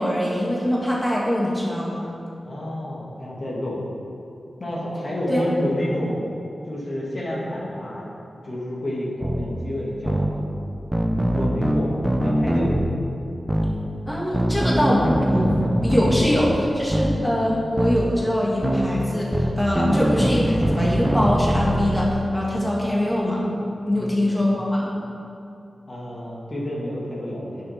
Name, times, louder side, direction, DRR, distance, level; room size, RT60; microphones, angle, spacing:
voice 1, 0.0-2.1 5.3-5.4 14.1-15.5 15.8-23.4 23.9-24.9, equal, 15° left, -5 dB, 2.0 m, -23 dB
voice 2, 2.4-3.8 4.6-6.2 6.7-8.1 8.4-10.5 11.0-11.9 12.2-12.8 23.9-24.2 25.9-27.6, left 1 dB, 50° left, -5 dB, 2.4 m, -29 dB
sound 1, 9.2-9.5 10.1-10.3 10.9-12.9 13.5-13.7 14.3-16.3 16.9-17.2 17.8-18.0 18.6-18.9 19.3-22.1, equal, 15° right, 0.8 m, -22 dB
8.3 x 7.0 x 5.8 m, 2.7 s
cardioid pair, 45°, 0 cm